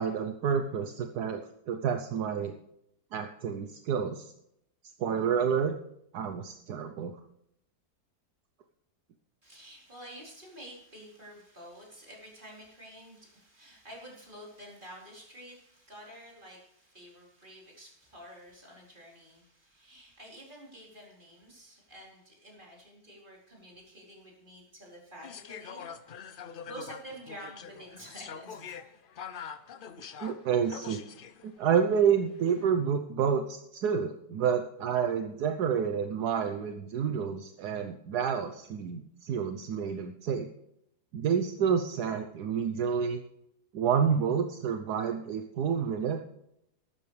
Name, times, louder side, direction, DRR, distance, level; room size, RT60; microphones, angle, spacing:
voice 1, 0.0-1.4 1.7-2.5 3.1-4.2 5.0-5.7 6.1-7.1 30.2-31.0 31.4-40.5 41.1-43.2 43.7-46.2, right 7 dB, 75° right, 6 dB, 1.3 m, -29 dB
voice 2, 9.4-25.9 26.3-28.8, equal, 30° right, -3 dB, 4.4 m, -49 dB
sound 1, 25.2-31.5 32.3-32.6, left 7 dB, 65° left, 0.5 m, -44 dB
14.0 x 12.0 x 3.3 m, 0.77 s
omnidirectional pair, 1.8 m